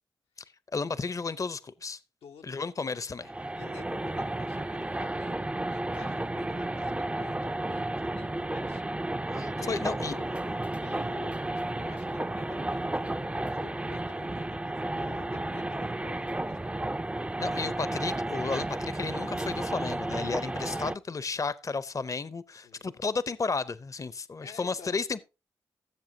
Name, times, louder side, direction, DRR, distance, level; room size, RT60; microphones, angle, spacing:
voice 1, 0.7-2.0 2.4-3.3 9.3-10.1 17.4-25.2, left 4 dB, 35° left, 0.6 m, -33 dB
voice 2, 2.2-3.1 3.5-8.9 9.5-16.9 20.6-20.9 22.5-22.9 24.4-25.0, left 6 dB, 80° left, 0.7 m, -50 dB
sound 1, 3.2-21.0, right 1 dB, 15° right, 0.4 m, -32 dB
16.0 x 7.2 x 2.7 m
supercardioid pair, 45°, 10 cm